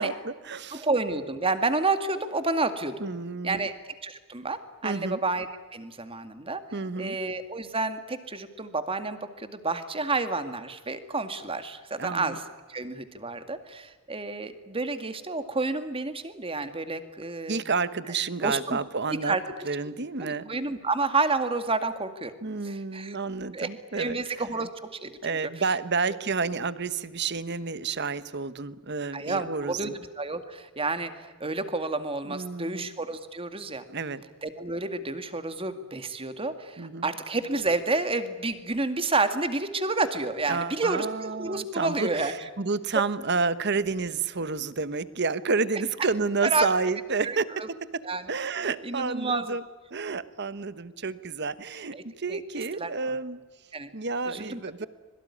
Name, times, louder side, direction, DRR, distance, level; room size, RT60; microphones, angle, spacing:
voice 1, 0.0-0.9 3.0-3.7 4.8-5.2 6.7-7.2 12.0-12.4 17.5-19.4 19.6-20.5 22.4-24.4 25.2-30.0 32.3-32.9 33.9-34.2 36.8-37.1 40.5-49.6 49.9-53.4 53.9-54.9, right 4 dB, 55° right, 14 dB, 1.2 m, -30 dB
voice 2, 0.7-3.1 3.4-3.7 4.0-5.5 5.7-6.6 7.0-12.4 12.7-17.6 18.4-18.8 19.1-19.4 20.2-22.3 22.6-23.2 23.5-25.4 29.1-33.8 34.4-42.3 46.4-46.7 47.2-47.7 48.0-48.3 48.7-49.5 51.9-52.4 52.8-52.9 53.7-53.9 54.3-54.6, right 3 dB, 25° right, 9 dB, 2.1 m, -30 dB
25.5 x 22.5 x 9.8 m, 1.4 s
head